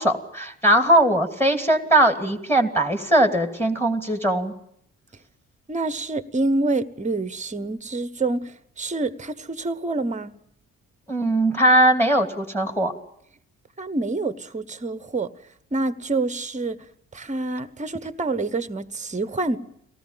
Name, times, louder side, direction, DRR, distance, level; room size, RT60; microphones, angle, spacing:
voice 1, 0.0-4.5 11.1-12.9, right 1 dB, 5° left, 8 dB, 2.7 m, -20 dB
voice 2, 5.7-10.3 13.8-15.3 15.7-16.8 17.1-19.6, right 2 dB, 15° right, 16 dB, 1.2 m, -27 dB
23.5 x 18.5 x 8.9 m, 0.72 s
figure-of-eight pair, 40°, 41 cm